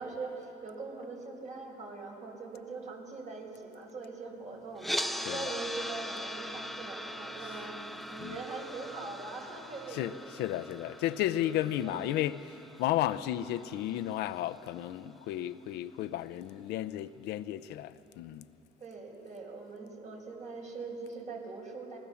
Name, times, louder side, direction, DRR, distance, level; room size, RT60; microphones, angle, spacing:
voice 1, 0.0-7.8 8.1-10.5 10.8-12.0 18.8-22.0, right 3 dB, 45° right, 5.9 m, -42 dB
sound 1, 4.8-14.9, equal, ahead, 0.8 m, -41 dB
voice 2, 9.9-18.5, left 13 dB, 85° left, 0.7 m, -33 dB
28.0 x 20.0 x 7.2 m
cardioid pair, 110°, 17 cm